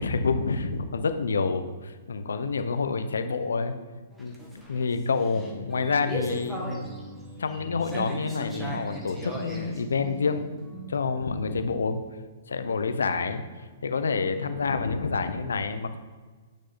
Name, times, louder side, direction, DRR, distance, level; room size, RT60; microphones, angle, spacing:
voice 1, 0.0-3.8 4.2-6.9 7.4-10.5 10.9-12.0 12.5-13.4 13.8-16.0, left 4 dB, 85° left, 9 dB, 0.9 m, -28 dB
sound 1, 4.1-11.0, right 1 dB, 10° right, 1.8 m, -38 dB
10.0 x 6.4 x 4.2 m, 1.4 s
hypercardioid pair, 135°, 0 cm